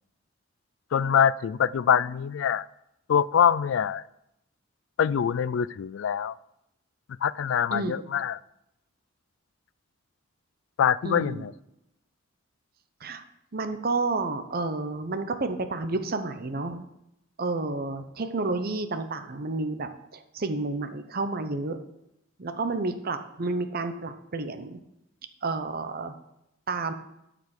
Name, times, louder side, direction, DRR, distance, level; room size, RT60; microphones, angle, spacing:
voice 1, 0.9-2.7 3.1-4.0 5.0-6.4 7.2-8.4 10.8-11.5, left 8 dB, 70° left, 20 dB, 0.3 m, -24 dB
voice 2, 7.7-8.0 11.0-11.5 13.0-13.2 13.5-16.9 17.4-21.8 22.4-24.8 25.4-26.1 26.7-26.9, right 3 dB, 50° right, 8 dB, 0.8 m, -30 dB
12.0 x 5.1 x 6.5 m, 0.83 s
head